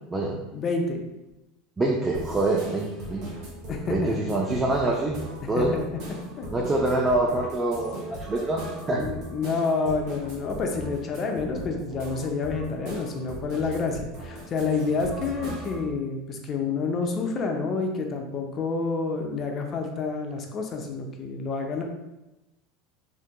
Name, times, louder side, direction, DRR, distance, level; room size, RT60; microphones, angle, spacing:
voice 1, 0.3-1.0 3.7-4.1 5.6-5.8 6.4-6.5 8.9-21.8, left 4 dB, 35° left, 3 dB, 0.5 m, -28 dB
voice 2, 1.8-3.3 3.9-5.2 5.5-5.7 6.5-8.6 8.9-9.0, right 2 dB, 15° right, -2 dB, 0.4 m, -25 dB
sound 1, 2.1-15.9, right 1 dB, 60° right, 1.1 m, -39 dB
3.6 x 2.6 x 2.2 m, 1.0 s
supercardioid pair, 105°, 0 cm